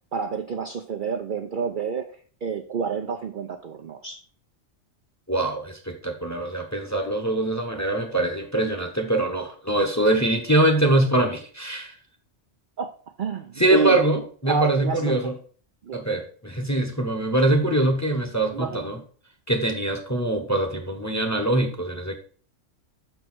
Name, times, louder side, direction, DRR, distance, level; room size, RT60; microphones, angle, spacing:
voice 1, 0.1-4.2 12.8-12.9 13.2-14.0 14.5-15.2 15.8-16.0 18.5-18.9, right 5 dB, 50° right, 5 dB, 0.6 m, -29 dB
voice 2, 5.3-11.9 13.6-15.3 15.9-19.0 19.5-22.1, right 1 dB, 15° left, 4 dB, 1.0 m, -23 dB
6.4 x 4.6 x 6.0 m, 0.43 s
omnidirectional pair, 1.3 m